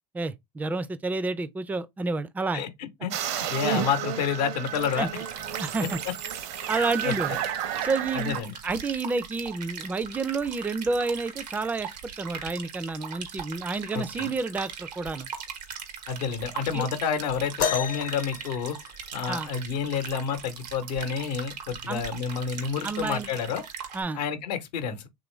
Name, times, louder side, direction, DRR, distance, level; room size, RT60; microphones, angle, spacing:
voice 1, 0.1-2.7 3.7-3.8 5.0-5.1 5.6-6.0 6.7-7.4 7.8-15.3 16.7-16.9 19.3-19.5 21.9-22.0 22.8-23.3 23.9-24.2, right 3 dB, 10° right, 0.3 m, -30 dB
voice 2, 2.5-3.1 3.4-5.1 5.8-5.9 6.7-7.1 8.1-8.5 13.9-14.3 16.1-18.8 19.1-23.6 24.1-25.1, left 7 dB, 80° left, 0.8 m, -29 dB
sound 1, 3.1-8.4, right 10 dB, 60° right, 0.7 m, -32 dB
saddle mountain stream, 4.7-24.0, right 7 dB, 85° right, 0.9 m, -40 dB
sound 2, 17.6-19.5 21.2-21.3 22.0-22.3 23.2-23.3, left 8 dB, 45° left, 0.5 m, -31 dB
3.1 x 2.4 x 3.1 m
hypercardioid pair, 90°, 20 cm